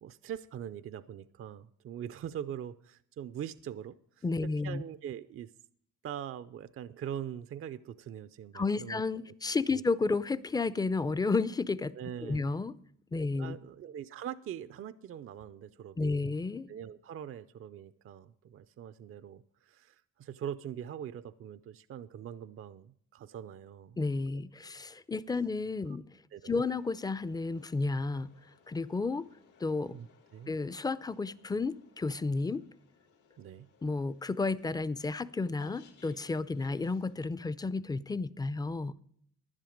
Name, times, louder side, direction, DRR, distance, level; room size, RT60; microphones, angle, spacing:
voice 1, 0.0-4.2 4.6-5.5 6.0-9.0 9.7-9.8 12.0-12.5 13.4-16.3 16.7-24.0 24.6-24.7 26.3-26.5 29.9-30.5 33.4-33.7, right 9 dB, 45° right, 15 dB, 0.4 m, -42 dB
voice 2, 4.2-4.8 8.5-11.9 12.2-12.7 13.1-13.6 16.0-16.7 24.0-26.0 26.4-28.3 28.7-29.3 29.6-30.0 30.5-32.6 33.8-39.0, left 3 dB, 15° left, 17 dB, 0.4 m, -32 dB
sound 1, 26.7-37.5, left 6 dB, 85° left, 2.3 m, -62 dB
11.0 x 10.5 x 5.1 m, 0.64 s
cardioid pair, 90°, 30 cm